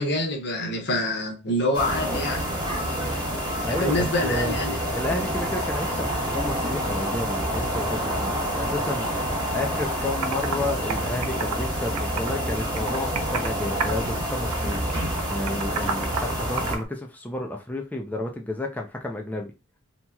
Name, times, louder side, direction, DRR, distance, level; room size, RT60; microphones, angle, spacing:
voice 1, 0.0-2.5 3.7-4.8, left 1 dB, 50° left, 0.9 m, -26 dB
sound 1, 1.7-16.8, equal, 20° right, 1.0 m, -28 dB
voice 2, 3.6-4.6 4.9-14.9 15.3-19.5, left 1 dB, 5° left, 0.4 m, -31 dB
Computer keyboard, 9.8-9.9 10.2-10.6 10.9-12.4 12.8-13.5 13.8-14.2 14.5-16.9, right 6 dB, 80° right, 0.5 m, -31 dB
2.9 x 2.9 x 2.3 m
head